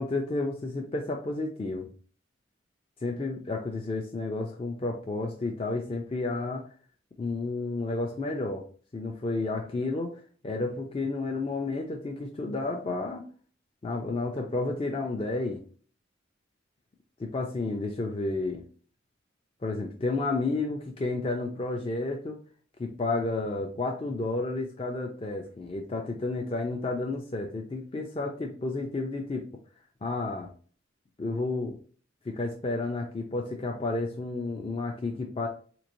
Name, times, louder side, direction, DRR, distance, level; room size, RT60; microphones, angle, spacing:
voice 1, 0.0-1.9 3.0-6.6 7.2-8.6 8.9-13.2 13.8-15.6 17.2-18.6 19.6-22.4 22.8-29.4 30.0-30.5 31.2-31.8 32.3-35.5, left 2 dB, 30° left, 2 dB, 0.4 m, -31 dB
3.6 x 3.0 x 2.5 m, 0.43 s
head